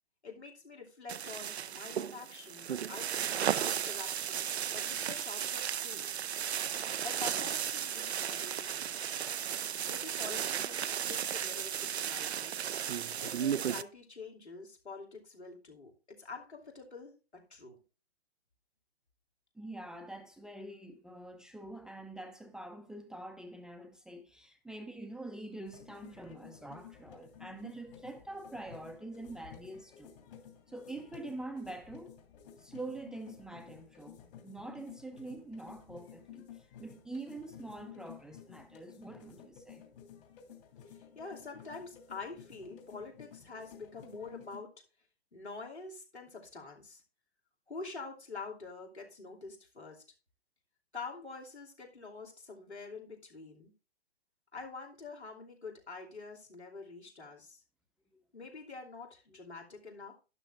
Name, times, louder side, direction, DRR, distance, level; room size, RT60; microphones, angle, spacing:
voice 1, 0.2-6.1 7.0-9.0 9.9-12.6 13.2-17.8 40.9-44.8 45.3-47.0 47.7-50.0 50.9-53.7 54.5-57.6 58.3-60.1, left 4 dB, 90° left, 3.0 m, -46 dB
sound 1, 1.1-13.8, right 9 dB, 75° right, 0.6 m, -35 dB
voice 2, 19.5-30.1 30.7-32.1 32.6-39.8, right 2 dB, ahead, 0.7 m, -45 dB
sound 2, 25.7-44.6, left 8 dB, 55° left, 3.0 m, -53 dB
12.0 x 10.5 x 2.6 m
figure-of-eight pair, 120°, 32 cm